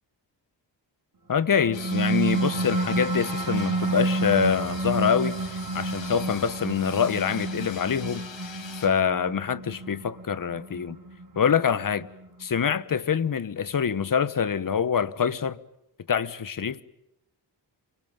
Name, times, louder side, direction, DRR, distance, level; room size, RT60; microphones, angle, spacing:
voice 1, 1.3-5.4 5.7-8.2 8.8-11.0 11.3-12.1 12.4-15.6 16.1-16.8, left 7 dB, 50° left, 1.2 m, -25 dB
sound 1, 1.5-12.4, right 2 dB, 50° right, 4.8 m, -30 dB
sound 2, 1.7-8.9, left 6 dB, 90° left, 5.6 m, -43 dB
27.5 x 23.5 x 9.0 m
wide cardioid pair, 140°, 44 cm